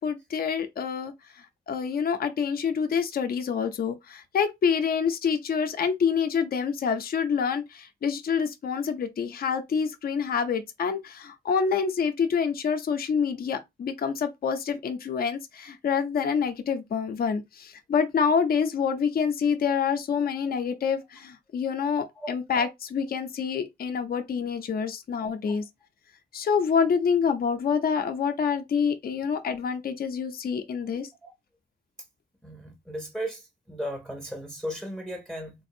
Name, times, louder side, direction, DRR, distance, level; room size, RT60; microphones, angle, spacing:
voice 1, 0.0-1.1 1.7-25.6 26.3-31.1, left 6 dB, 55° left, 0.5 m, -27 dB
voice 2, 32.4-33.4 33.7-35.5, equal, 5° left, 0.6 m, -35 dB
3.8 x 2.5 x 2.6 m
wide cardioid pair, 165°, 18 cm